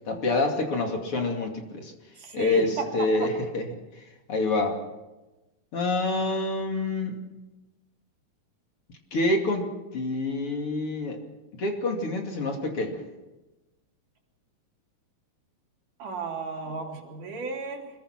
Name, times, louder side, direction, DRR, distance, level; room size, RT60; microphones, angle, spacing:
voice 1, 0.1-1.9 2.3-3.7 3.9-4.8 5.7-7.3 9.1-11.2 11.5-13.0, left 2 dB, 40° left, 3 dB, 3.2 m, -27 dB
voice 2, 2.2-2.9 3.2-3.3 16.0-17.9, right 4 dB, 65° right, -1 dB, 4.8 m, -33 dB
25.5 x 21.5 x 6.0 m, 1.1 s
omnidirectional pair, 4.0 m